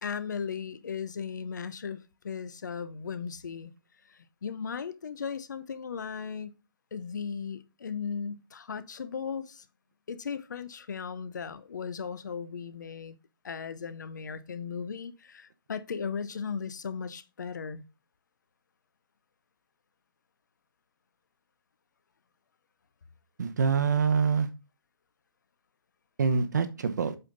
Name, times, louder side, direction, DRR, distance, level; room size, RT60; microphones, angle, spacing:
voice 1, 0.0-3.7 4.0-6.6 6.9-9.7 10.1-13.2 13.4-17.8, left 6 dB, 50° left, 0.7 m, -37 dB
voice 2, 23.4-24.5 26.2-27.2, right 5 dB, 50° right, 0.9 m, -25 dB
8.1 x 5.3 x 3.9 m
hypercardioid pair, 180°, 13 cm